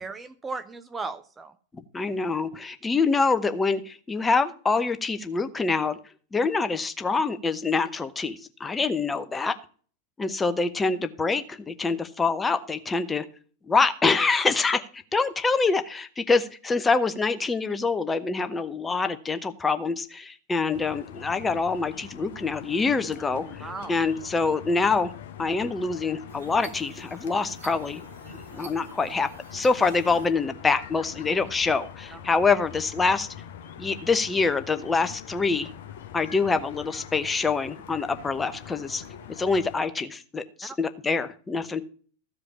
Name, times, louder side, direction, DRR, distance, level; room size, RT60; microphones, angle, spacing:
voice 1, 0.0-1.5 23.6-23.9 32.1-32.2 40.6-40.8, right 4 dB, 15° right, 10 dB, 0.6 m, -36 dB
voice 2, 1.7-6.0 6.3-9.5 10.2-13.3 13.7-25.1 25.4-28.0 28.5-33.3 33.8-35.7 36.1-39.0 39.4-41.8, left 4 dB, 15° left, 10 dB, 0.9 m, -25 dB
sound 1, 20.7-39.8, left 9 dB, 55° left, 1.1 m, -43 dB
sound 2, 26.3-30.3, right 5 dB, 65° right, 1.4 m, -48 dB
14.5 x 5.0 x 7.0 m, 0.43 s
figure-of-eight pair, 90°, 0 cm